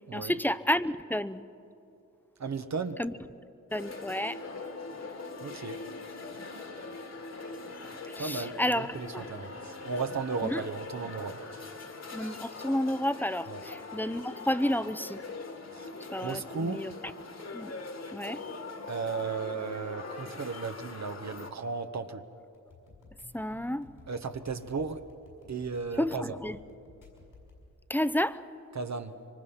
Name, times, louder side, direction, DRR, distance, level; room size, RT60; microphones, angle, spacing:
voice 1, 0.1-1.4 3.0-3.1 3.7-4.4 8.1-9.2 10.4-10.6 12.1-15.2 16.1-16.9 17.5-17.7 18.1-18.4 23.3-23.9 26.0-26.6 27.9-28.4, left 1 dB, 5° left, 13 dB, 0.7 m, -31 dB
voice 2, 2.4-3.0 5.4-5.8 8.2-11.4 13.5-13.6 15.7-15.9 16.2-16.9 18.9-22.2 24.1-25.0 25.5-26.2 28.7-29.2, right 5 dB, 60° right, 7 dB, 1.1 m, -35 dB
sound 1, 3.7-21.5, left 3 dB, 55° left, 2.0 m, -42 dB
sound 2, 22.5-27.6, left 3 dB, 85° left, 5.7 m, -54 dB
25.5 x 24.0 x 5.7 m, 2.8 s
cardioid pair, 55°, 31 cm